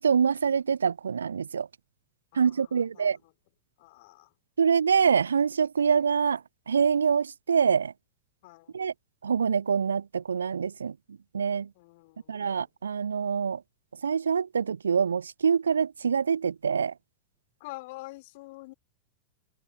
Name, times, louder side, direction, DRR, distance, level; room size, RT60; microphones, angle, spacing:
voice 1, 0.0-1.7 2.4-3.2 4.6-6.4 6.7-7.9 8.7-8.9 9.2-10.9 11.3-11.7 12.3-13.6 14.0-16.9, right 6 dB, 70° right, 0.6 m, -25 dB
voice 2, 2.3-3.3 3.8-4.3 8.4-8.8 11.8-12.6 17.6-18.7, left 22 dB, 50° left, 3.3 m, -47 dB
open air
figure-of-eight pair, 90°, 0 cm